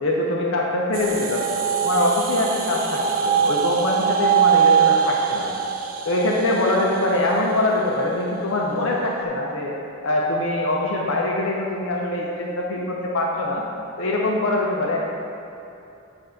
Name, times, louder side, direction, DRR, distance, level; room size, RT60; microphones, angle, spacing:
voice 1, 0.0-5.5 6.0-9.7 10.0-13.6 14.0-15.0, left 1 dB, 65° left, -2 dB, 0.7 m, -23 dB
sound 1, 0.9-9.2, right 7 dB, 40° right, 0.3 m, -23 dB
7.7 x 2.6 x 5.7 m, 2.8 s
head